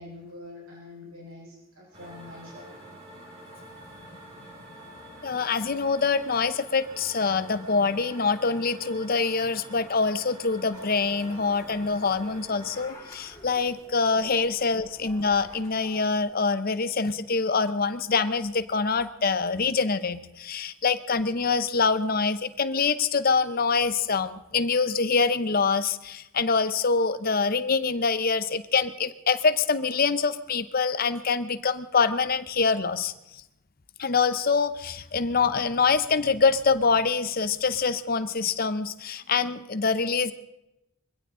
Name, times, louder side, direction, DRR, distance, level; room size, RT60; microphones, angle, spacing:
voice 1, 0.0-3.0 14.1-14.3 14.6-14.7, left 2 dB, 75° right, -4 dB, 5.5 m, -45 dB
sound 1, 1.9-12.9, equal, 30° right, 6.5 m, -46 dB
voice 2, 5.2-33.1 34.0-40.3, left 4 dB, 45° left, 13 dB, 0.7 m, -25 dB
sound 2, 10.7-16.2, left 1 dB, 15° left, 5.8 m, -50 dB
22.5 x 16.0 x 3.8 m, 0.90 s
head